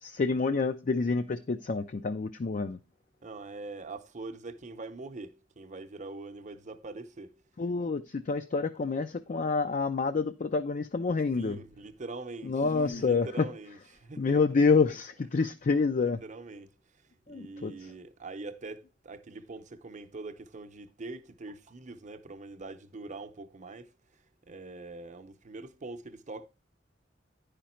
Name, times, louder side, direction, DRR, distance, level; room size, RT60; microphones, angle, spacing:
voice 1, 0.0-2.8 7.6-11.6 12.4-13.5 14.2-16.2 17.3-17.9, left 4 dB, 40° left, 0.4 m, -28 dB
voice 2, 3.2-7.4 11.4-14.4 16.0-26.5, right 3 dB, 40° right, 0.7 m, -43 dB
10.5 x 5.1 x 4.3 m
head